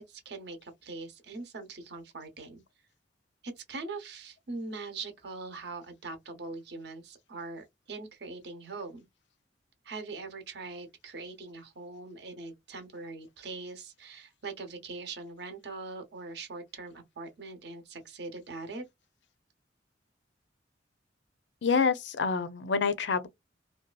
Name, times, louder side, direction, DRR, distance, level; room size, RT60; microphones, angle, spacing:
voice 1, 0.0-2.6 3.4-9.1 9.8-18.8, right 3 dB, 60° right, 0.8 m, -42 dB
voice 2, 21.6-23.3, left 5 dB, 70° left, 0.5 m, -27 dB
2.6 x 2.3 x 2.3 m
head